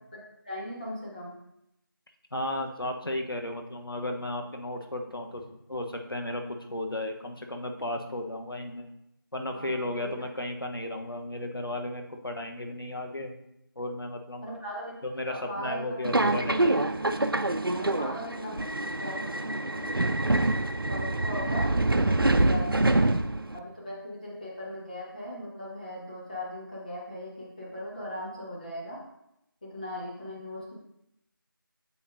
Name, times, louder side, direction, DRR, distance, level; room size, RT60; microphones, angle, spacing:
voice 1, 0.1-1.4 9.5-10.1 14.4-15.8 17.7-20.3 20.9-21.7 22.0-23.1 23.5-29.0 29.6-30.7, left 1 dB, 25° left, -6 dB, 1.6 m, -39 dB
voice 2, 2.3-5.4 5.7-8.9 9.3-13.3 13.8-14.5 15.0-16.9, left 1 dB, 80° left, 3 dB, 1.1 m, -34 dB
Subway metro underground, 16.0-23.6, right 2 dB, 80° right, 0.6 m, -26 dB
8.5 x 7.2 x 2.7 m, 0.82 s
figure-of-eight pair, 170°, 12 cm